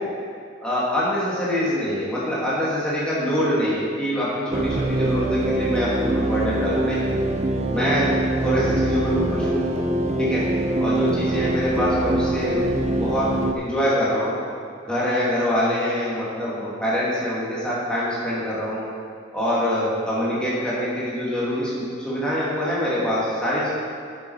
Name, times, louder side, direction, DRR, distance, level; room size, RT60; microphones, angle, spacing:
voice 1, 0.6-7.0 7.7-8.1 8.4-9.6 10.2-10.5 10.8-13.3 13.5-14.4 14.8-18.8 19.3-23.7, equal, 5° left, -9 dB, 2.5 m, -24 dB
sound 1, 4.5-13.5, right 1 dB, 35° right, 0.6 m, -23 dB
10.5 x 7.3 x 4.8 m, 2.5 s
head